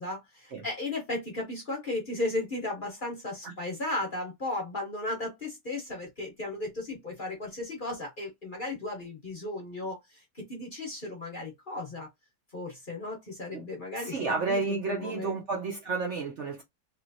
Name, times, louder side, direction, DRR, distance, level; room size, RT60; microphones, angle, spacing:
voice 1, 0.0-12.1 12.5-15.4, left 2 dB, 35° left, 0.9 m, -35 dB
voice 2, 14.0-16.6, right 4 dB, 55° right, 0.9 m, -31 dB
3.1 x 2.9 x 2.6 m
omnidirectional pair, 1.8 m